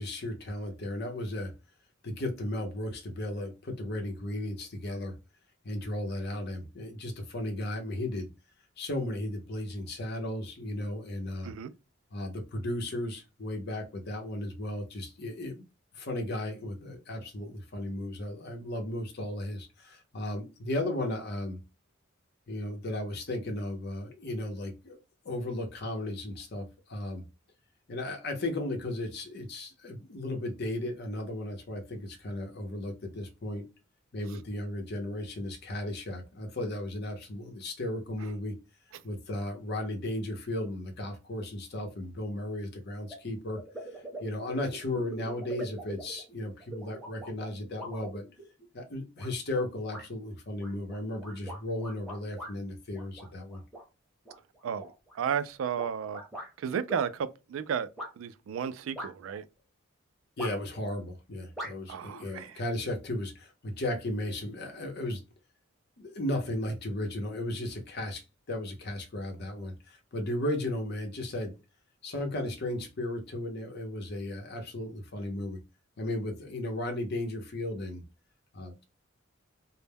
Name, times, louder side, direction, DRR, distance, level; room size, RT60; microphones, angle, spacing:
voice 1, 0.0-1.5 2.0-5.2 5.6-8.3 8.8-11.5 12.1-15.6 15.9-21.6 22.5-27.2 27.9-33.7 34.1-38.6 39.0-43.6 43.9-48.2 48.7-53.6 60.4-65.2 66.0-71.6 72.0-75.6 76.0-78.0 78.5-78.8, left 1 dB, 55° left, 0.7 m, -35 dB
sound 1, 43.1-43.2 43.5-48.6 49.2-49.6 49.9-50.1 50.6-52.5 52.9-53.8 54.3-56.5 56.9-57.1 58.0-58.1 58.9-59.4 60.4-60.8 61.6-61.7, right 1 dB, ahead, 0.8 m, -42 dB
voice 2, 55.1-56.2 56.6-57.9 58.2-59.4 61.9-62.6, right 7 dB, 75° right, 0.3 m, -33 dB
2.1 x 2.0 x 3.3 m
head